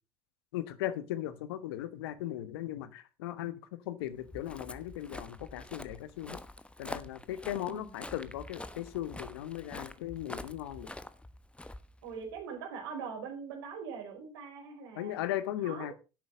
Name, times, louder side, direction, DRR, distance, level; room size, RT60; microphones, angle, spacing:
voice 1, 0.5-6.4 6.8-10.9 14.9-15.9, left 13 dB, 80° left, 14 dB, 1.2 m, -37 dB
Walk footsteps, 4.1-12.4, left 1 dB, 10° left, 1.1 m, -46 dB
voice 2, 7.6-8.2 12.0-15.2 15.6-15.9, right 6 dB, 80° right, 2 dB, 4.7 m, -42 dB
11.0 x 8.4 x 5.1 m, 0.31 s
hypercardioid pair, 65°, 13 cm